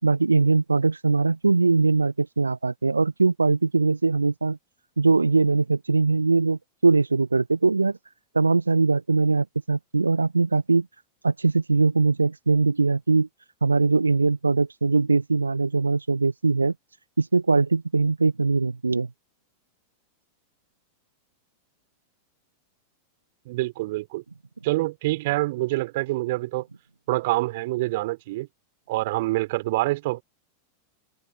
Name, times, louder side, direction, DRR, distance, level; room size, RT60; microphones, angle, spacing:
voice 1, 0.0-4.6 5.0-8.0 8.3-10.9 11.2-13.3 13.6-16.7 17.2-19.1, right 3 dB, 80° right, 1.2 m, -21 dB
voice 2, 23.5-24.2 24.6-26.7 27.1-28.5 28.9-30.2, right 19 dB, 50° right, 4.1 m, -26 dB
figure-of-eight pair, 90°, 0 cm